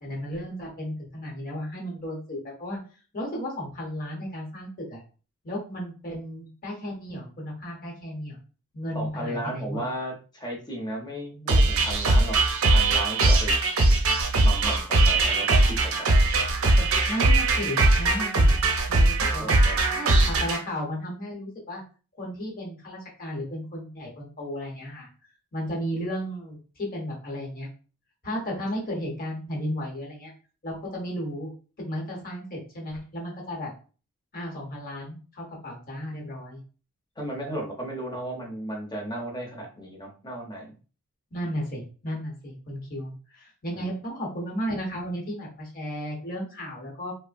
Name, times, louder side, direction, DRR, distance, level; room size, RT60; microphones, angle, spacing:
voice 1, 0.0-2.8 3.1-5.0 5.4-8.4 8.7-9.8 17.1-18.6 18.9-19.6 19.9-21.8 22.2-25.1 25.5-27.7 28.2-30.3 30.6-31.5 31.8-33.7 34.3-36.6 41.3-47.1, equal, 40° left, -2 dB, 1.0 m, -34 dB
voice 2, 8.9-12.4 12.7-13.5 14.4-16.1 16.6-16.9 19.4-19.8 37.2-40.7 43.7-43.9, right 1 dB, 20° left, 0 dB, 0.7 m, -34 dB
sound 1, 11.5-20.6, right 2 dB, 65° right, 0.6 m, -20 dB
3.1 x 2.0 x 2.5 m, 0.37 s
head